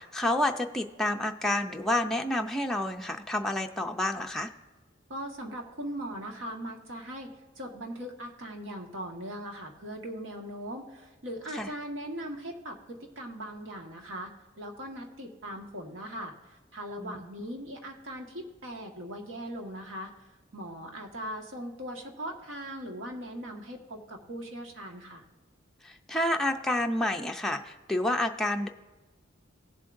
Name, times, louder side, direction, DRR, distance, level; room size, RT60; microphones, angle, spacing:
voice 1, 0.0-4.5 11.6-11.7 17.0-17.2 25.8-28.7, left 1 dB, ahead, 2 dB, 0.5 m, -29 dB
voice 2, 5.1-14.3 14.6-20.1 20.5-25.2, equal, 75° right, 2 dB, 1.6 m, -40 dB
17.5 x 7.5 x 2.6 m, 1.2 s
head